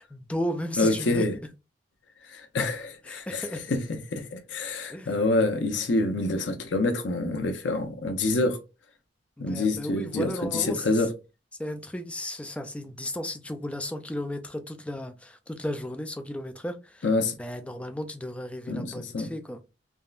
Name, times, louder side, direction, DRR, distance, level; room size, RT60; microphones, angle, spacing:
voice 1, 0.0-1.3 3.1-3.6 4.9-5.1 9.4-11.0 11.6-17.1 17.4-19.6, left 1 dB, 5° left, 0.3 m, -34 dB
voice 2, 0.8-1.3 2.3-8.6 9.4-11.1 17.0-17.3 18.7-19.3, left 2 dB, 70° left, 0.6 m, -27 dB
3.5 x 2.1 x 2.4 m
head